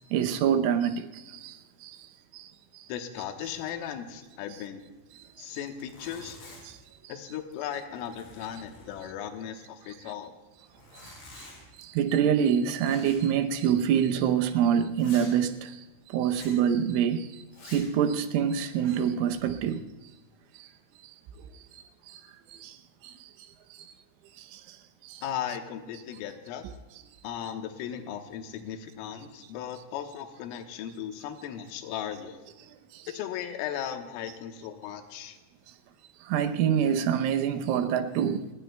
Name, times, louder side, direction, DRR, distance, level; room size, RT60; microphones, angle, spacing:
voice 1, 0.1-2.1 2.3-2.9 5.2-5.6 6.6-6.8 11.0-11.1 11.8-19.9 20.5-20.7 21.0-21.1 21.5-22.2 22.5-22.8 23.0-23.3 23.7-23.9 24.4-24.8 25.0-25.2 32.9-33.1 36.2-38.5, right 8 dB, 80° right, 3.3 m, -27 dB
voice 2, 2.9-4.8 5.4-6.4 7.1-10.4 25.2-26.7 27.2-32.4 33.1-35.4, left 9 dB, 85° left, 3.7 m, -37 dB
Zipper (clothing), 3.4-4.1 4.5-4.6 5.3-5.4 5.6-6.9 7.4-7.6 7.9-9.3 10.7-11.7 12.8-13.3 13.6-13.8 14.3-14.4 15.0-15.3 16.3-16.6 17.5-17.9 18.5-19.1, left 2 dB, 55° left, 8.4 m, -49 dB
29.0 x 21.0 x 2.3 m
omnidirectional pair, 5.7 m